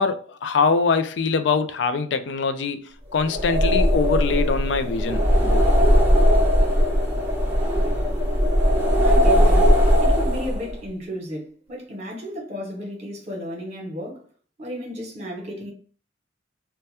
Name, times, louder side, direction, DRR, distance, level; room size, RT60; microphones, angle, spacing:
voice 1, 0.0-5.7, left 4 dB, 75° left, 0.4 m, -23 dB
sound 1, 3.2-10.8, equal, 10° right, 1.0 m, -19 dB
voice 2, 9.0-9.8 10.0-14.2 14.6-15.7, equal, 40° right, 1.2 m, -33 dB
2.7 x 2.2 x 3.2 m
head